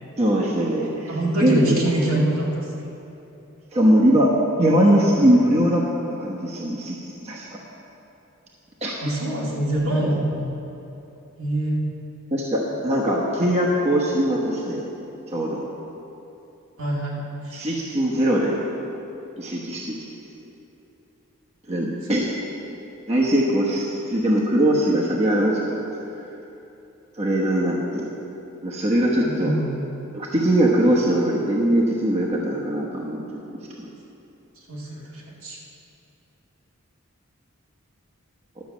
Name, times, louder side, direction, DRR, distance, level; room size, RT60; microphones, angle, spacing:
voice 1, 0.2-1.1 1.4-1.8 3.7-5.8 6.2-7.6 8.8-8.9 12.3-14.9 15.3-15.6 17.5-18.6 19.4-20.0 21.7-22.3 23.1-25.8 27.2-28.1 28.6-29.5 30.1-33.2 33.7-33.9, right 1 dB, 30° right, -4 dB, 1.1 m, -21 dB
voice 2, 1.1-2.7 9.0-10.5 11.4-11.8 16.8-17.6 29.2-29.8 34.7-35.6, right 1 dB, 70° right, -4 dB, 2.3 m, -25 dB
12.0 x 6.4 x 7.3 m, 3.0 s
head